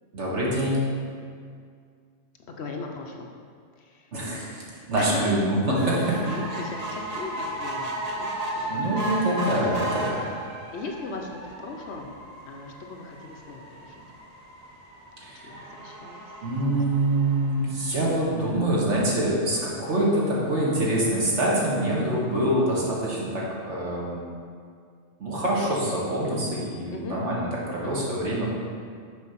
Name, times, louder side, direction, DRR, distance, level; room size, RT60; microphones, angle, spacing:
voice 1, 0.1-0.9 4.1-6.2 8.7-10.3 15.2-15.7 16.4-24.3 25.2-28.5, right 1 dB, 65° right, -5 dB, 1.7 m, -25 dB
voice 2, 2.5-3.3 3.8-4.1 5.0-5.4 6.2-8.8 10.7-14.0 15.3-16.3 16.7-16.8 26.9-27.2 27.8-28.1, left 3 dB, 65° left, 2 dB, 0.9 m, -38 dB
sound 1, 5.8-18.4 18.9-19.0 19.3-19.4 19.7-19.8, right 1 dB, 35° right, 0.8 m, -35 dB
6.4 x 4.2 x 5.6 m, 2.1 s
omnidirectional pair, 1.3 m